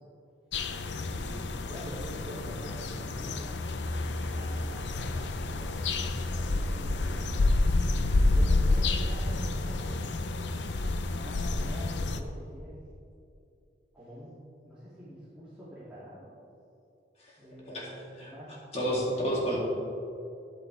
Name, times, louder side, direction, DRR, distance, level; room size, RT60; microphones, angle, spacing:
sound 1, 0.5-12.2, left 2 dB, 75° left, 0.6 m, -29 dB
voice 1, 1.0-3.8 4.3-10.1 11.1-12.8 13.9-16.3 17.4-19.4, equal, 5° right, -11 dB, 2.3 m, -46 dB
voice 2, 18.7-19.6, equal, 35° left, -4 dB, 2.6 m, -30 dB
12.5 x 10.0 x 3.4 m, 2.6 s
head